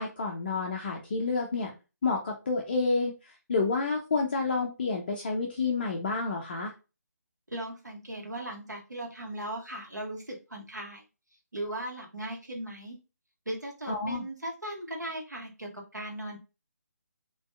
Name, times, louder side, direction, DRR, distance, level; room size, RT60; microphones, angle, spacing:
voice 1, 0.0-1.7 2.0-3.1 3.5-6.7 13.9-14.2, left 4 dB, 35° left, 1 dB, 0.4 m, -29 dB
voice 2, 7.5-11.0 11.5-13.0 13.5-16.4, right 1 dB, 90° right, 0 dB, 0.8 m, -38 dB
2.5 x 2.2 x 2.3 m, 0.30 s
figure-of-eight pair, 150°, 9 cm